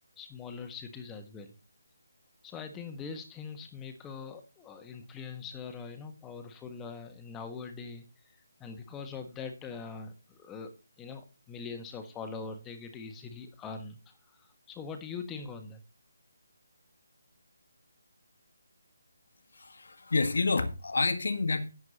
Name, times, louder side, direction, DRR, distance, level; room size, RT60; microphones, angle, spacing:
voice 1, 0.2-1.5 2.4-8.0 8.6-10.7 11.0-14.0 14.3-15.8, left 5 dB, 10° left, 1.4 m, -42 dB
voice 2, 19.5-21.7, left 3 dB, 60° left, 1.7 m, -29 dB
11.0 x 9.2 x 4.2 m
figure-of-eight pair, 150°, 0 cm